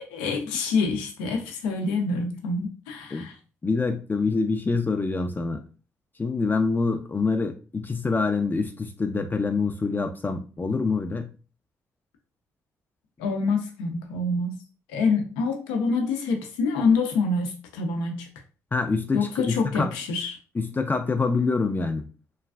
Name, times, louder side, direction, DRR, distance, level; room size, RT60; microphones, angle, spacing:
voice 1, 0.1-3.4 13.2-14.6 14.9-18.3 19.1-20.4, left 4 dB, 85° left, 4 dB, 0.5 m, -26 dB
voice 2, 3.6-5.6 6.2-11.3 18.7-19.9 20.5-22.1, left 4 dB, 25° left, 5 dB, 0.4 m, -26 dB
3.1 x 2.3 x 2.3 m, 0.35 s
hypercardioid pair, 50°, 7 cm